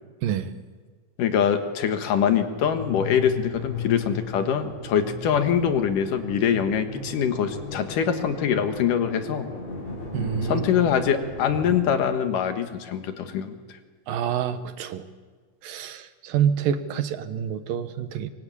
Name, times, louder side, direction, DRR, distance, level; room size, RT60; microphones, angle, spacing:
voice 1, 1.2-9.5 10.4-13.6, left 8 dB, 70° left, 7 dB, 3.0 m, -24 dB
sound 1, 1.9-11.8, left 4 dB, 50° left, 6.4 m, -36 dB
voice 2, 10.1-10.7 14.1-15.0 15.6-18.3, right 8 dB, 80° right, 10 dB, 2.9 m, -27 dB
25.0 x 23.0 x 8.7 m, 1.4 s
omnidirectional pair, 4.0 m